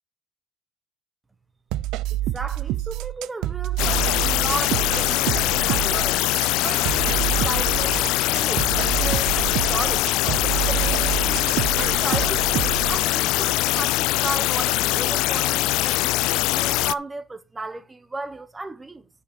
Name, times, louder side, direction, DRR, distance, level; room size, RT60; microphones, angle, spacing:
sound 1, 1.7-13.0, right 14 dB, 75° right, 0.6 m, -27 dB
voice 1, 2.3-6.2 6.6-11.5 11.7-19.1, right 2 dB, 10° right, 1.0 m, -35 dB
sound 2, 3.8-16.9, left 18 dB, 85° left, 0.4 m, -22 dB
9.7 x 5.7 x 5.3 m
cardioid pair, 180°, 0 cm